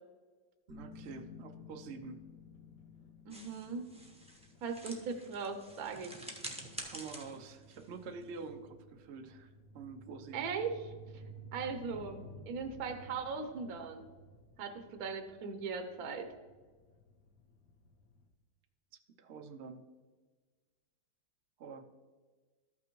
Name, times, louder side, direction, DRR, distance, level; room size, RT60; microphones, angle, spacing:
sound 1, 0.7-6.1, left 2 dB, 45° right, 0.7 m, -59 dB
voice 1, 0.7-2.2 6.8-10.5 19.2-19.8 21.6-21.9, right 4 dB, 80° right, 5 dB, 0.6 m, -47 dB
sound 2, 0.8-18.3, equal, 55° left, 1.2 m, -55 dB
sound 3, 3.3-8.6, right 1 dB, 5° right, 0.5 m, -48 dB
voice 2, 3.3-3.9 4.6-6.1 10.3-11.2 11.5-14.0 14.6-16.3, right 5 dB, 65° right, 5 dB, 1.1 m, -39 dB
13.5 x 5.9 x 3.0 m, 1.4 s
omnidirectional pair, 2.0 m